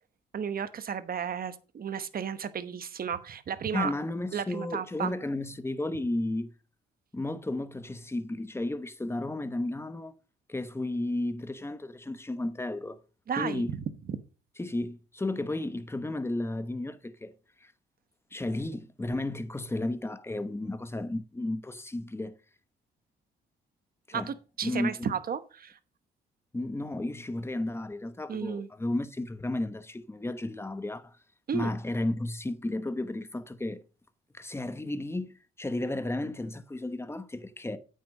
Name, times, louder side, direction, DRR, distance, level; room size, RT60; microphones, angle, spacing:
voice 1, 0.3-3.9 4.3-5.1 13.3-13.6 14.1-14.2 24.1-25.8 28.3-28.7 31.5-31.7, right 7 dB, 50° right, 1.0 m, -33 dB
voice 2, 3.7-6.5 7.1-10.1 10.5-13.0 13.4-13.7 14.6-17.3 17.6-17.7 18.3-22.4 24.1-24.3 24.6-25.1 26.5-31.2 31.5-33.8 34.3-37.8, left 2 dB, 10° left, 1.0 m, -33 dB
8.7 x 6.5 x 5.3 m
cardioid pair, 90°, 20 cm